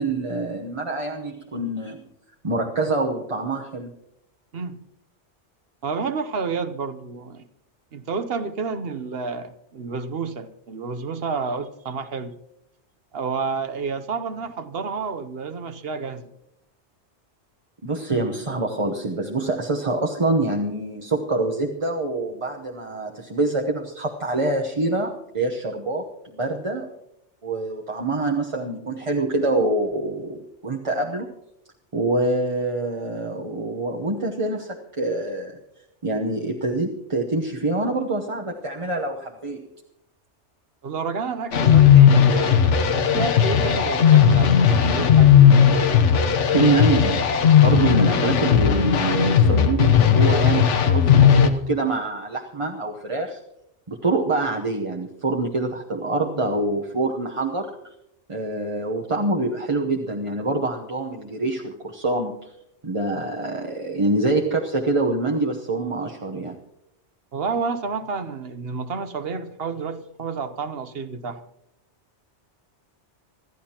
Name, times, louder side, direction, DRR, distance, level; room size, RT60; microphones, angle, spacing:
voice 1, 0.0-2.0 2.4-3.9 17.8-26.9 27.4-31.3 31.9-35.6 36.0-39.7 46.5-47.2 47.6-53.4 53.9-57.9 58.3-62.5 62.8-66.6, right 2 dB, 30° right, 1 dB, 0.9 m, -25 dB
voice 2, 5.8-7.4 7.9-12.3 13.1-16.3 40.8-45.6 67.3-71.4, right 5 dB, 60° right, 11 dB, 1.0 m, -30 dB
sound 1, 41.5-51.5, left 8 dB, 85° left, 1.3 m, -16 dB
25.5 x 13.5 x 2.9 m, 0.83 s
omnidirectional pair, 1.2 m